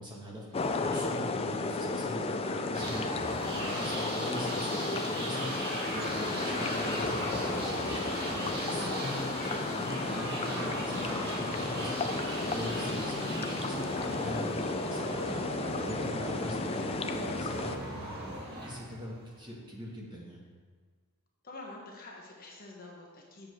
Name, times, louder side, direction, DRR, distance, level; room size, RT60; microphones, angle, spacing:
voice 1, 0.0-7.7 8.3-20.5, equal, 20° right, -3 dB, 1.5 m, -42 dB
sound 1, 0.5-17.8, left 3 dB, 25° left, 0.4 m, -33 dB
sound 2, 2.7-19.5, right 1 dB, 45° right, 2.1 m, -38 dB
voice 2, 8.6-9.1 21.4-23.5, left 2 dB, 40° left, -1 dB, 1.3 m, -47 dB
7.6 x 5.0 x 6.2 m, 1.5 s
head